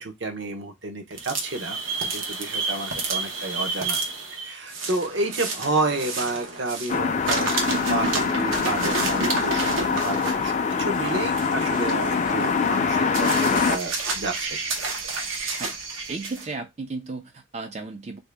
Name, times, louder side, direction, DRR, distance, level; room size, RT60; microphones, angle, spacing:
voice 1, 0.0-1.8 2.1-4.0 4.4-9.7 10.0-14.5, right 2 dB, 60° right, 0.8 m, -30 dB
sound 1, 1.1-7.0 7.2-16.5, right 3 dB, 85° right, 0.9 m, -30 dB
sound 2, 6.9-13.8, left 5 dB, 35° left, 0.4 m, -24 dB
voice 2, 16.1-18.2, right 3 dB, 30° right, 0.4 m, -34 dB
2.9 x 2.7 x 3.3 m
head